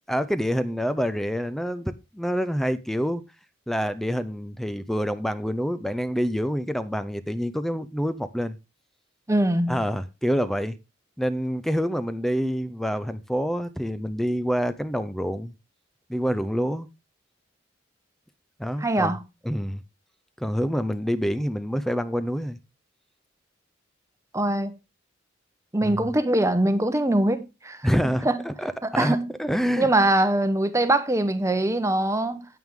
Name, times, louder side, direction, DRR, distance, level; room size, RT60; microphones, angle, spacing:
voice 1, 0.1-3.2 3.7-8.6 9.7-10.8 11.2-15.5 16.1-16.9 18.6-19.1 19.4-19.8 20.4-22.6 25.8-26.0 27.8-29.9, equal, ahead, 0.5 m, -27 dB
voice 2, 9.3-9.8 18.8-19.2 24.3-24.7 25.7-27.8 28.2-28.4 28.8-29.2 29.8-32.4, right 1 dB, 15° right, 0.9 m, -22 dB
9.3 x 9.1 x 3.6 m
head